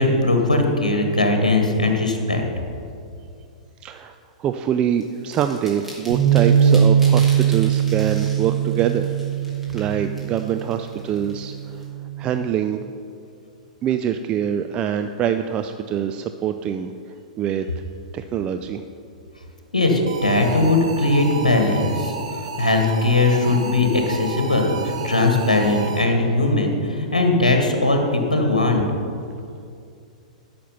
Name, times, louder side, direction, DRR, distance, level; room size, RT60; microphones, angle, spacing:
voice 1, 0.0-2.4 19.7-28.8, left 2 dB, 75° left, 3 dB, 1.3 m, -19 dB
voice 2, 3.8-9.1 9.7-11.8 12.2-12.8 13.8-16.9 17.4-17.7 18.1-18.8, right 9 dB, 25° right, 7 dB, 0.3 m, -24 dB
sound 1, 5.0-11.8, right 1 dB, 5° right, 2.5 m, -42 dB
Bass guitar, 6.1-12.3, right 8 dB, 75° right, 2.5 m, -20 dB
sound 2, 20.1-26.3, right 4 dB, 55° right, 1.1 m, -33 dB
13.0 x 6.0 x 5.5 m, 2.4 s
figure-of-eight pair, 105°, 4 cm